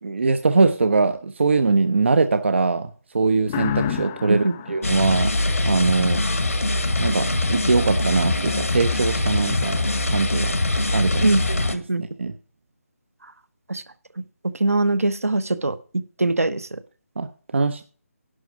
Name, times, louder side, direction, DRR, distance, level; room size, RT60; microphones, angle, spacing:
voice 1, 0.0-2.9 3.1-5.3 5.6-6.2 7.0-10.6 10.9-11.4 12.0-12.3 17.2-17.8, right 4 dB, 50° right, 10 dB, 0.7 m, -22 dB
sound 1, 3.5-6.2, left 9 dB, 15° left, 0.4 m, -30 dB
sound 2, 4.8-11.7, left 2 dB, 70° left, 1.7 m, -23 dB
voice 2, 14.4-15.8 16.2-16.7, right 2 dB, 70° right, 11 dB, 1.0 m, -22 dB
11.5 x 4.8 x 7.0 m, 0.38 s
figure-of-eight pair, 150°, 8 cm